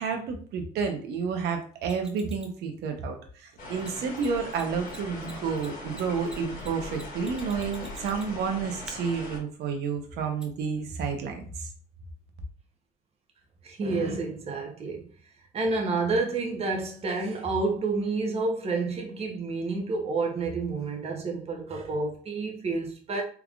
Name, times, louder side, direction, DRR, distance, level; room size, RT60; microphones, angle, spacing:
voice 1, 0.0-11.7, right 5 dB, 75° right, 0.9 m, -30 dB
Mechanisms, 1.8-2.6 3.8-3.9 4.2-4.3 4.5-4.6 4.9-8.5 8.9-9.0 10.4-10.5, equal, 5° right, 0.6 m, -47 dB
sound 1, 3.6-9.4, left 2 dB, 55° left, 1.7 m, -40 dB
voice 2, 13.6-15.1 15.5-23.2, right 3 dB, 35° right, 0.9 m, -29 dB
3.5 x 3.5 x 2.4 m
cardioid pair, 110°, 17 cm